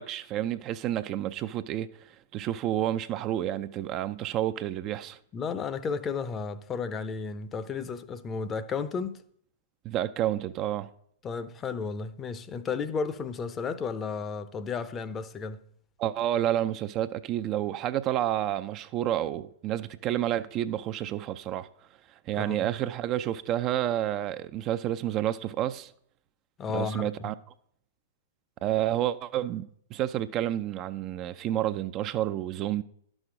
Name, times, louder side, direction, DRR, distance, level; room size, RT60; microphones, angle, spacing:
voice 1, 0.0-1.9 2.3-5.2 9.8-10.9 16.0-21.7 22.3-25.9 26.7-27.3 28.6-32.8, right 12 dB, 35° right, 0.4 m, -29 dB
voice 2, 5.3-9.2 11.2-15.6 22.4-22.6 26.6-27.3, left 5 dB, 25° left, 0.7 m, -33 dB
11.5 x 6.2 x 5.0 m
figure-of-eight pair, 105°, 0 cm